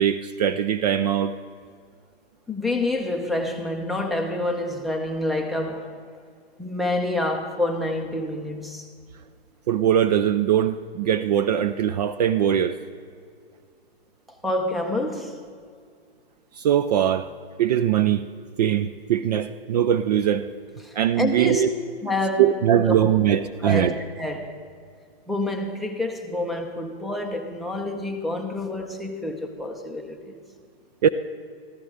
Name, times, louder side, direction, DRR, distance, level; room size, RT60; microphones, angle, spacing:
voice 1, 0.0-1.3 9.7-12.8 16.6-17.3 17.6-18.2 18.6-20.5 20.9-21.7 22.4-24.0 31.0-31.1, right 10 dB, 40° right, 0.5 m, -21 dB
voice 2, 2.5-6.0 6.6-8.9 14.4-15.4 20.8-21.7 22.0-22.6 22.9-23.0 23.6-24.6 25.3-30.4, left 1 dB, ahead, 0.8 m, -28 dB
14.5 x 14.0 x 4.9 m
hypercardioid pair, 145°, 31 cm